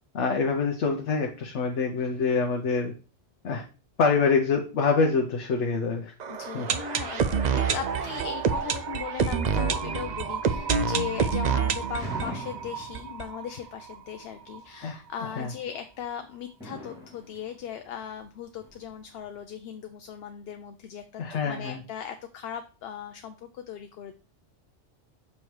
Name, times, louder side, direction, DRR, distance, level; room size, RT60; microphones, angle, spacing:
voice 1, 0.1-2.9 3.4-3.6 4.0-6.1 6.5-6.7 14.8-15.0 15.4-15.5 21.2-21.8, left 4 dB, 85° left, 3 dB, 1.1 m, -25 dB
sound 1, 6.2-14.0 14.2-14.3 14.5-14.6 15.1-15.2, right 6 dB, 55° right, 0.5 m, -28 dB
voice 2, 6.3-24.1, left 8 dB, 65° left, 8 dB, 0.7 m, -38 dB
sound 2, 11.9-13.8 14.3-14.8 15.6-16.0 16.4-19.3, equal, 5° right, 2.4 m, -41 dB
7.1 x 3.2 x 4.6 m, 0.35 s
omnidirectional pair, 1.2 m